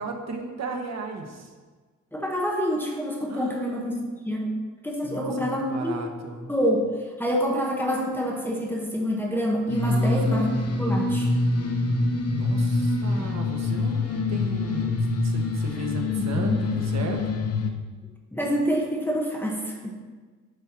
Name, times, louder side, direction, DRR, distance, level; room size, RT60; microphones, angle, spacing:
voice 1, 0.0-1.5 3.3-4.0 5.0-6.5 9.8-10.5 12.3-17.2, right 3 dB, 60° right, 3 dB, 1.3 m, -35 dB
voice 2, 2.1-4.0 4.2-4.5 4.8-6.0 6.5-6.9 7.2-11.3 16.2-16.6 18.3-20.0, equal, 5° left, -1 dB, 1.1 m, -27 dB
sound 1, 9.7-17.7, left 3 dB, 55° left, 0.9 m, -25 dB
9.6 x 4.4 x 6.1 m, 1.4 s
wide cardioid pair, 145°, 30 cm